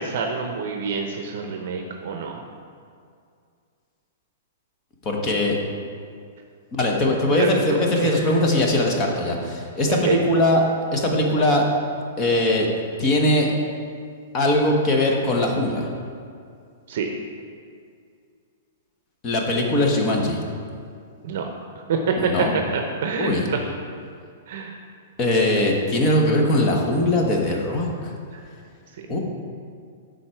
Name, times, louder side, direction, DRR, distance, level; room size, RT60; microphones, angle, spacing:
voice 1, 0.0-2.4 7.3-8.3 9.9-10.2 16.9-17.1 21.2-21.5 21.9-22.5 22.7-23.8 24.5-24.8 29.0-29.1, right 5 dB, 55° right, 3 dB, 0.7 m, -27 dB
voice 2, 5.0-5.6 6.7-10.6 10.9-11.6 12.2-12.7 13.0-13.5 14.3-15.9 19.2-20.4 22.2-22.5 23.2-23.4 25.2-28.1 29.1-29.2, left 1 dB, 25° left, 0 dB, 1.0 m, -21 dB
11.5 x 4.0 x 4.4 m, 2.3 s
hypercardioid pair, 165°, 0 cm